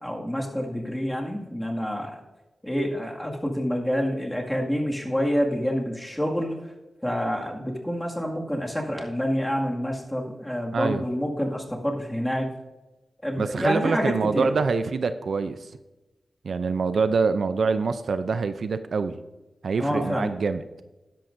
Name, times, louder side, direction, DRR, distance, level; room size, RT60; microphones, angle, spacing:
voice 1, 0.0-2.2 2.6-6.6 7.0-12.5 13.2-14.5 19.8-20.3, equal, 10° left, 0 dB, 2.0 m, -27 dB
voice 2, 10.7-11.0 13.4-15.7 16.4-19.2 19.6-20.6, right 4 dB, 75° right, 11 dB, 0.5 m, -25 dB
12.5 x 10.5 x 2.6 m, 1.1 s
cardioid pair, 70°, 0 cm